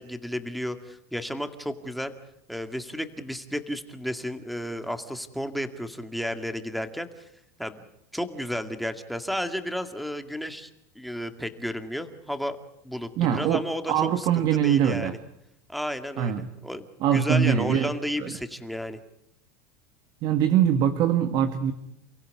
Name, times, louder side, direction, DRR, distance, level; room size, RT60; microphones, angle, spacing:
voice 1, 0.0-2.1 2.5-7.1 7.6-7.8 8.1-10.7 11.0-12.6 12.8-15.2 15.7-19.0, equal, ahead, 8 dB, 2.1 m, -32 dB
voice 2, 13.2-15.1 16.2-16.4 17.0-17.9 18.2-18.4 20.2-21.7, right 9 dB, 50° right, 9 dB, 1.7 m, -23 dB
30.0 x 16.0 x 9.5 m, 0.78 s
supercardioid pair, 125°, 8 cm